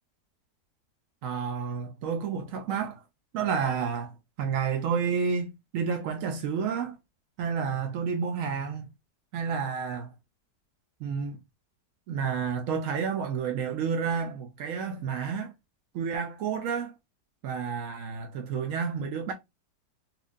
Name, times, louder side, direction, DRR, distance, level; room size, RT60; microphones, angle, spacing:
voice 1, 1.2-3.0 3.3-4.1 4.4-7.0 7.4-8.9 9.3-10.1 11.0-11.4 12.1-15.5 15.9-16.9 17.4-19.3, right 6 dB, 75° right, 0.7 m, -30 dB
4.3 x 2.5 x 2.5 m
omnidirectional pair, 1.9 m